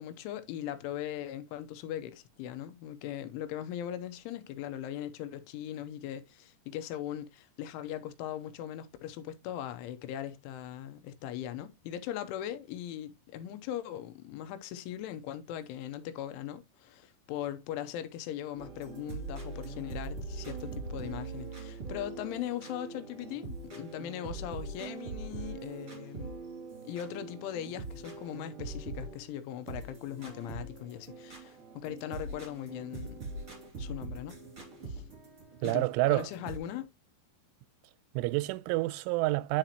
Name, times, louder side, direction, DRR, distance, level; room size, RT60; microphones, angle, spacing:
voice 1, 0.0-26.3 26.8-33.2 33.8-34.3 34.9-35.0 35.6-36.9, left 11 dB, 90° left, 3.2 m, -39 dB
sound 1, 18.6-29.3 29.6-36.6, right 3 dB, 25° right, 1.9 m, -42 dB
voice 2, 35.6-36.3 38.1-39.6, right 20 dB, 90° right, 3.1 m, -28 dB
10.5 x 5.0 x 2.9 m
omnidirectional pair, 5.4 m